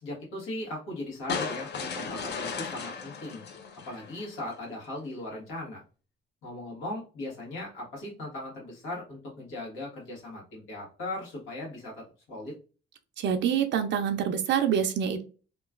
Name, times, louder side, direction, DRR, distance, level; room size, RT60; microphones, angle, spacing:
voice 1, 0.0-3.4 3.9-5.8 6.4-12.5, left 1 dB, 85° left, -3 dB, 1.4 m, -38 dB
sound 1, 1.3-4.5, left 5 dB, 60° left, 0.6 m, -36 dB
voice 2, 13.2-15.2, right 8 dB, 65° right, 7 dB, 0.4 m, -26 dB
2.9 x 2.3 x 2.3 m, 0.36 s
cardioid pair, 90°, 20 cm